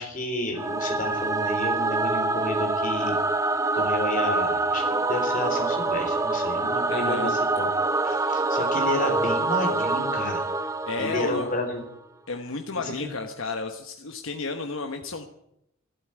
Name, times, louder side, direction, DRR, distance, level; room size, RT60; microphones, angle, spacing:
voice 1, 0.0-3.2 3.7-7.7 8.0-10.4 11.0-11.8 12.7-13.1, left 1 dB, 40° left, 4 dB, 3.7 m, -31 dB
Singing / Musical instrument, 0.5-11.8, right 3 dB, 15° right, 0.7 m, -26 dB
voice 2, 6.9-7.4 10.9-11.5 12.3-15.2, left 3 dB, 75° left, 5 dB, 1.1 m, -32 dB
12.5 x 12.0 x 9.1 m, 0.79 s
head